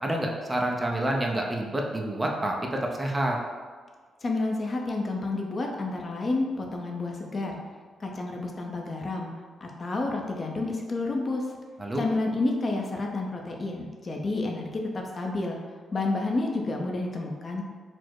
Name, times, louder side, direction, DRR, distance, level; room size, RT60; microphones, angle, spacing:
voice 1, 0.0-3.4 11.8-12.0, right 1 dB, 15° right, 0 dB, 0.5 m, -28 dB
voice 2, 4.2-7.6 8.0-9.3 9.6-11.5 12.0-15.6 15.9-17.6, left 2 dB, 35° left, 1 dB, 0.6 m, -30 dB
4.2 x 2.0 x 4.5 m, 1.5 s
cardioid pair, 110°, 0 cm